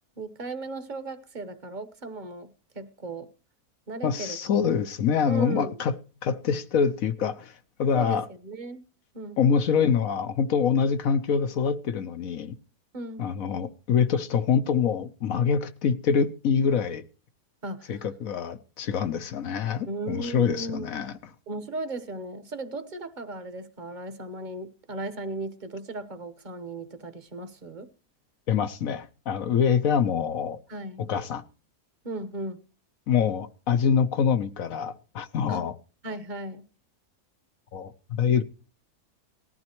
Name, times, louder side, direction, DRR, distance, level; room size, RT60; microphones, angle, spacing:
voice 1, 0.2-3.3 3.9-4.4 5.3-5.7 7.9-8.8 9.1-9.4 12.9-13.3 17.6-18.0 19.9-21.1 21.5-27.9 30.7-31.1 32.0-32.6 35.5-35.7 36.0-36.7, right 2 dB, 35° right, 1.2 m, -36 dB
voice 2, 4.0-5.9 6.2-8.3 9.4-12.5 13.2-17.0 17.9-21.1 28.5-30.6 31.0-31.4 33.1-35.8 37.7-38.4, left 7 dB, 65° left, 1.3 m, -25 dB
19.0 x 14.0 x 3.0 m
omnidirectional pair, 1.6 m